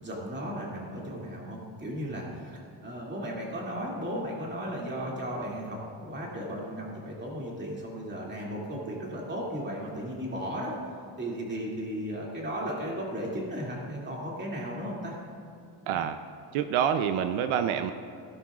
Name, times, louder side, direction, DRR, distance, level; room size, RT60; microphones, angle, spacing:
voice 1, 0.0-10.7 11.2-15.2, equal, 20° right, -3 dB, 2.5 m, -35 dB
voice 2, 15.9-16.2 16.5-17.9, right 8 dB, 80° right, 9 dB, 0.7 m, -27 dB
17.0 x 11.0 x 2.4 m, 2.5 s
cardioid pair, 150°, 48 cm